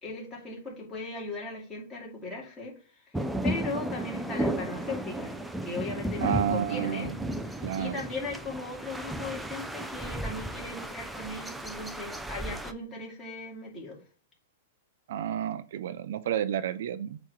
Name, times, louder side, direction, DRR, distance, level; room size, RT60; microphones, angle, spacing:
voice 1, 0.0-7.1 7.4-14.0, left 3 dB, 15° left, -3 dB, 2.5 m, -38 dB
sound 1, 3.1-12.7, right 1 dB, 5° right, 0.4 m, -34 dB
voice 2, 6.2-7.1 7.6-8.0 15.1-17.2, right 9 dB, 65° right, 12 dB, 0.5 m, -30 dB
8.2 x 3.1 x 4.6 m, 0.38 s
supercardioid pair, 160°, 0 cm